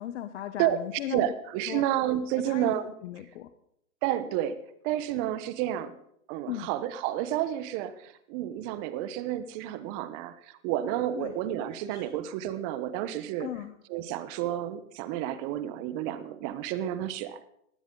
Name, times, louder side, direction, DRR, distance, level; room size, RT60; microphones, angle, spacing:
voice 1, 0.0-1.3 1.7-1.8 2.5-2.7 3.0-3.5 6.5-6.7 11.1-11.3 11.8-12.2 13.4-13.7, left 13 dB, 55° left, 11 dB, 1.1 m, -37 dB
voice 2, 1.1-2.8 4.0-6.0 6.3-10.3 10.6-13.5 13.9-17.5, right 12 dB, 35° right, 14 dB, 1.0 m, -30 dB
19.5 x 15.5 x 3.9 m, 0.73 s
hypercardioid pair, 130°, 42 cm